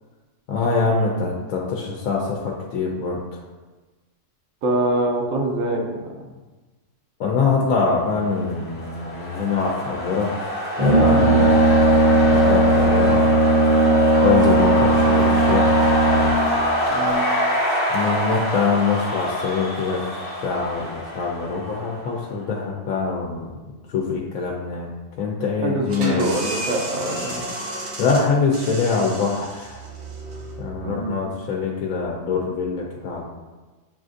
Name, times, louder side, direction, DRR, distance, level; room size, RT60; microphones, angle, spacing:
voice 1, 0.5-3.2 7.2-10.3 10.8-13.2 14.2-15.8 17.9-20.0 20.4-23.6 23.9-24.9 25.2-26.3 28.0-29.8 30.6-33.3, left 4 dB, 85° left, -1 dB, 1.0 m, -24 dB
voice 2, 4.6-6.3 11.1-11.4 16.9-17.2 25.6-27.5 30.8-31.3, right 1 dB, 80° right, 2 dB, 1.1 m, -25 dB
sound 1, 8.4-22.2, equal, 35° left, 1.2 m, -25 dB
Brass instrument, 10.8-16.6, right 1 dB, 40° right, 0.5 m, -17 dB
sound 2, 25.9-31.3, right 1 dB, 60° right, 1.0 m, -33 dB
7.3 x 2.5 x 2.5 m, 1.2 s
omnidirectional pair, 1.4 m